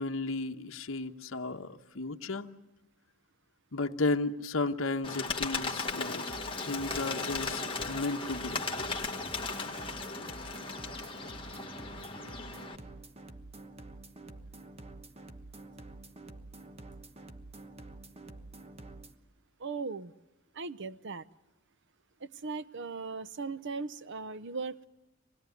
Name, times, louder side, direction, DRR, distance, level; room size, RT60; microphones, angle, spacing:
voice 1, 0.0-2.5 3.7-6.2 6.7-7.6 7.9-8.6, left 3 dB, 70° left, 5 dB, 1.1 m, -33 dB
Bird, 5.0-12.8, left 3 dB, 25° left, 1.6 m, -36 dB
sound 1, 6.3-19.2, right 2 dB, 30° right, 1.2 m, -48 dB
voice 2, 19.6-20.1 20.6-21.2 22.2-24.9, right 4 dB, 60° right, 15 dB, 0.8 m, -38 dB
26.0 x 20.5 x 9.2 m, 1.0 s
head